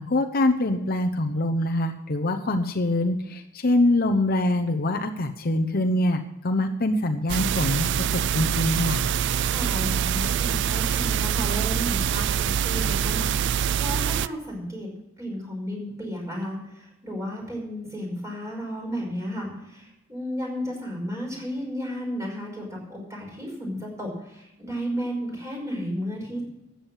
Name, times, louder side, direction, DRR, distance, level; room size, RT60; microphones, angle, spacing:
voice 1, 0.0-9.1, left 1 dB, 50° left, 5 dB, 0.9 m, -24 dB
sound 1, 7.3-14.3, right 8 dB, 60° right, 0.4 m, -25 dB
voice 2, 9.4-14.9 15.2-26.4, equal, 15° right, -1 dB, 5.4 m, -33 dB
13.0 x 8.7 x 7.2 m, 0.88 s
head